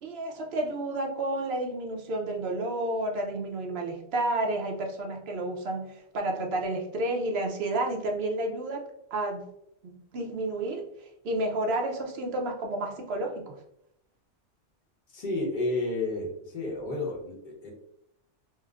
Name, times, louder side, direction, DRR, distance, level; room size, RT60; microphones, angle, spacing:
voice 1, 0.0-8.8 9.1-9.4 9.8-13.5, right 2 dB, 60° right, 1 dB, 0.8 m, -31 dB
voice 2, 15.1-16.3 16.5-17.7, left 2 dB, 45° left, -2 dB, 1.0 m, -31 dB
4.3 x 2.1 x 2.3 m, 0.75 s
omnidirectional pair, 1.2 m